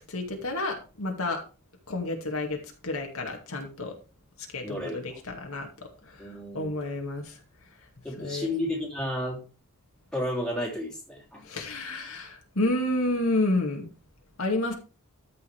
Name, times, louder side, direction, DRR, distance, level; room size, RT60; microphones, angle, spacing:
voice 1, 0.1-1.4 1.9-2.6 2.8-3.9 4.5-5.7 6.1-7.4 8.2-8.5 11.4-13.9 14.4-14.7, left 2 dB, 75° left, 2 dB, 2.3 m, -30 dB
voice 2, 4.6-5.2 6.2-6.8 8.0-9.4 10.1-11.4, left 1 dB, 5° left, -3 dB, 3.3 m, -32 dB
14.0 x 5.6 x 3.4 m, 0.33 s
head